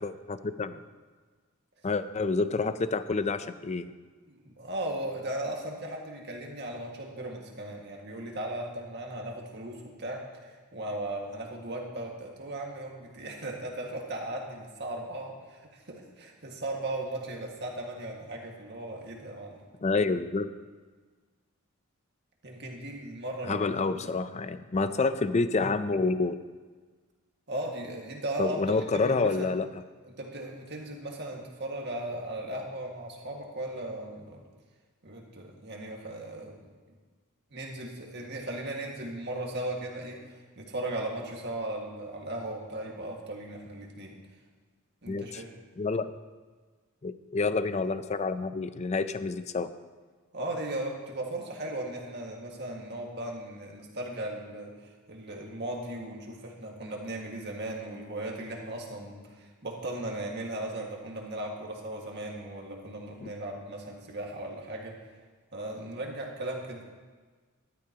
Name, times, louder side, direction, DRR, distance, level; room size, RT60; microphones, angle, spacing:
voice 1, 0.0-0.8 1.8-3.9 19.8-20.5 23.5-26.4 28.4-29.7 45.1-45.4 45.8-46.1 47.0-49.7 63.2-63.3, left 3 dB, 30° left, 12 dB, 0.5 m, -28 dB
voice 2, 4.3-19.6 22.4-24.2 24.7-24.9 27.5-29.5 30.0-34.4 35.0-36.6 37.5-44.2 45.0-45.5 50.3-65.0 65.5-66.8, right 1 dB, 55° right, 0 dB, 1.9 m, -37 dB
14.0 x 12.5 x 2.9 m, 1.4 s
head